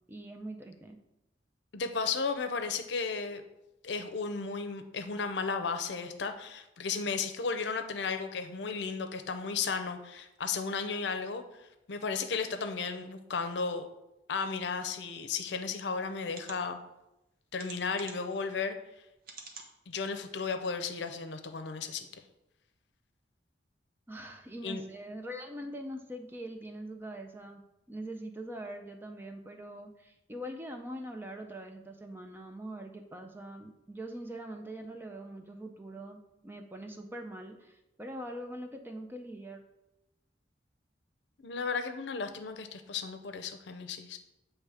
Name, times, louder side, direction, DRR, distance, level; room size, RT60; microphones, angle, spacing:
voice 1, 0.1-1.0 24.1-27.6 27.9-39.6, right 1 dB, 10° right, 4 dB, 0.5 m, -43 dB
voice 2, 1.7-3.4 3.8-11.4 11.9-13.9 14.3-16.8 17.5-18.8 19.9-22.1 24.6-24.8 41.4-44.2, left 5 dB, 75° left, 8 dB, 0.6 m, -34 dB
sound 1, 16.3-16.6 17.6-18.3 19.2-19.7 20.3-20.4 20.7-20.8, right 4 dB, 50° right, 0.9 m, -47 dB
7.9 x 3.2 x 4.8 m, 0.94 s
head